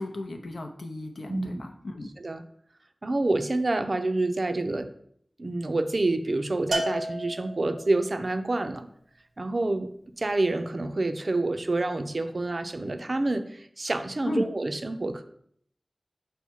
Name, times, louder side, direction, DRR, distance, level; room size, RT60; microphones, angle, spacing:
voice 1, 0.0-2.1 14.3-14.5, left 1 dB, 85° left, 4 dB, 0.5 m, -34 dB
voice 2, 1.3-1.6 2.2-2.4 3.0-4.9 5.4-8.9 9.4-9.9 10.2-15.2, right 2 dB, 55° right, 8 dB, 0.4 m, -28 dB
Bell, 6.7-8.1, right 1 dB, 85° right, 0.7 m, -31 dB
5.5 x 2.1 x 4.5 m, 0.65 s
wide cardioid pair, 55°, 0 cm